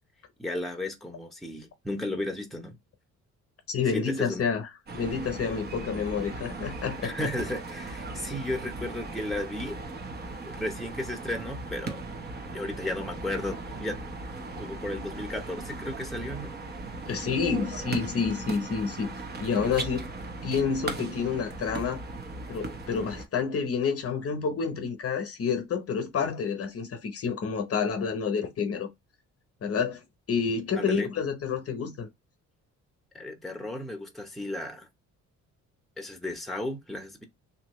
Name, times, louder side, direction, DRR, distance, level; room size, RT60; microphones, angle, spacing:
voice 1, 0.4-2.8 3.9-4.5 7.0-9.8 10.4-12.0 12.5-14.0 14.6-16.6 30.8-31.1 33.1-34.9 36.0-37.2, left 1 dB, ahead, 0.9 m, -34 dB
voice 2, 3.7-7.3 17.1-19.1 19.4-20.1 20.4-22.0 22.5-28.9 29.6-30.0 30.3-32.1, left 6 dB, 50° left, 0.8 m, -29 dB
sound 1, 4.9-23.2, right 3 dB, 35° right, 0.8 m, -38 dB
2.9 x 2.6 x 3.0 m
cardioid pair, 90°, 30 cm